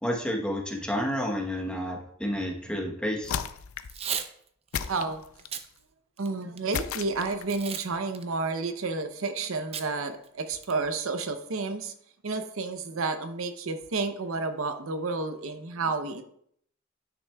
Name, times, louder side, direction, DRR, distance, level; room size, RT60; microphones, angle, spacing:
voice 1, 0.0-3.4, equal, 5° left, 0 dB, 0.9 m, -30 dB
sound 1, 3.2-4.0 4.7-5.7 6.7-7.6, left 8 dB, 80° left, 0.4 m, -34 dB
Packing tape duct tape / Tearing, 3.8-4.3 4.7-4.9 5.4-5.7 6.2-6.7 7.5-7.9 8.1-8.2 9.7-9.9 10.2-10.3 10.6-11.0, right 8 dB, 30° right, 0.4 m, -34 dB
voice 2, 4.9-5.2 6.2-11.9 12.2-16.2, right 3 dB, 70° right, 8 dB, 0.7 m, -31 dB
9.8 x 5.9 x 2.3 m, 0.66 s
head